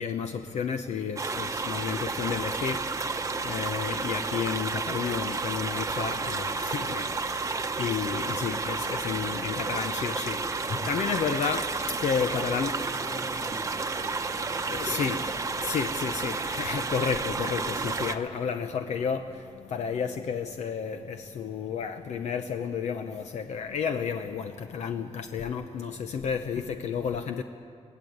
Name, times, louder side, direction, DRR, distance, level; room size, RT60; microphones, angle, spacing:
voice 1, 0.0-11.7 12.0-12.7 14.2-14.4 14.7-15.3 15.6-27.4, left 6 dB, 80° left, 7 dB, 0.8 m, -32 dB
sound 1, 1.2-18.1, right 4 dB, 25° right, 0.9 m, -31 dB
sound 2, 1.4-12.9, right 2 dB, 5° right, 1.2 m, -52 dB
voice 2, 12.0-12.7 13.0-14.0 14.7-15.0, left 1 dB, 25° left, 1 dB, 5.1 m, -44 dB
23.0 x 17.5 x 8.0 m, 2.3 s
wide cardioid pair, 140°, 12 cm